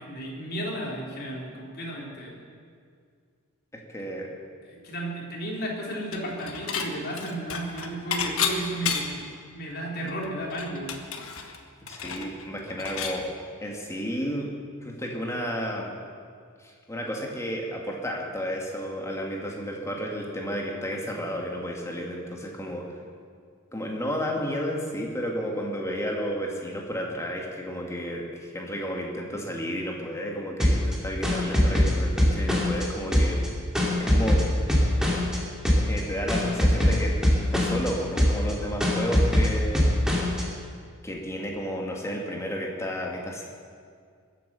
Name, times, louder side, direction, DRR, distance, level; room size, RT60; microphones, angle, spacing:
voice 1, 0.0-2.3 4.6-9.2 9.5-10.9, right 1 dB, 50° left, -2 dB, 3.4 m, -33 dB
voice 2, 3.7-4.3 11.8-13.3 13.6-14.5 14.8-15.9 16.6-23.0 23.7-33.4 34.1-34.4 35.9-37.2 37.5-39.9 41.0-43.4, equal, 15° left, -1 dB, 2.0 m, -32 dB
Dishes pots and pans / Chink clink, 6.1-6.9 7.2-9.3 9.7-9.8 10.1-13.2, left 6 dB, 70° left, 1.4 m, -31 dB
sound 1, 30.6-32.8 33.1-35.4 35.6-36.0 36.3-37.9 38.2-38.5 38.8-40.4, equal, 5° right, 2.7 m, -22 dB
21.5 x 8.5 x 6.8 m, 2.1 s
head